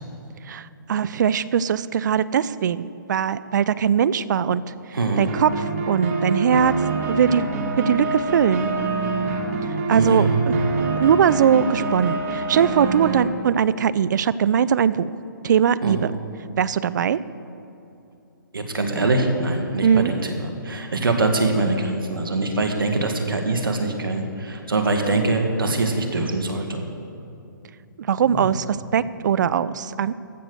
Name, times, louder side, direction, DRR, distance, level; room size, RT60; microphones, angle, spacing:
voice 1, 0.5-4.6 5.2-6.7 7.1-7.5 7.8-8.7 9.9-10.5 11.0-15.1 15.4-16.1 16.6-17.2 19.8-20.1 28.0-30.1, right 8 dB, 60° right, 17 dB, 0.4 m, -20 dB
voice 2, 4.9-5.3 9.9-10.5 15.8-16.0 18.5-26.8 28.3-28.5, right 2 dB, 90° right, 4 dB, 1.8 m, -23 dB
sound 1, 5.3-13.3, right 3 dB, 40° right, 1.7 m, -26 dB
14.5 x 6.9 x 6.4 m, 2.8 s
hypercardioid pair, 145°, 11 cm